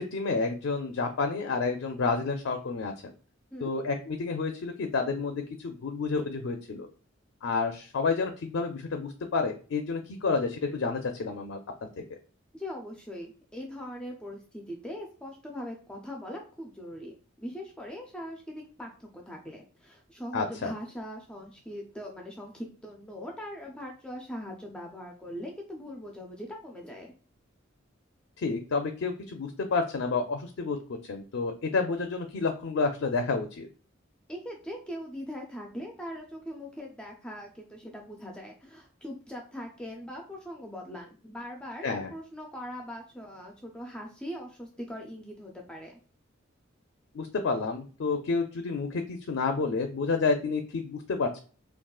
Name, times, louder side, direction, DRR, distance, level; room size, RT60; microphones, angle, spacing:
voice 1, 0.0-2.9 3.6-6.9 7.4-11.6 20.3-20.7 28.4-30.8 31.1-33.7 41.8-42.1 47.1-51.4, left 4 dB, 70° left, 5 dB, 0.4 m, -30 dB
voice 2, 12.5-17.1 17.4-27.1 34.3-46.0, equal, 5° left, 0 dB, 0.4 m, -41 dB
3.6 x 2.3 x 2.3 m, 0.38 s
head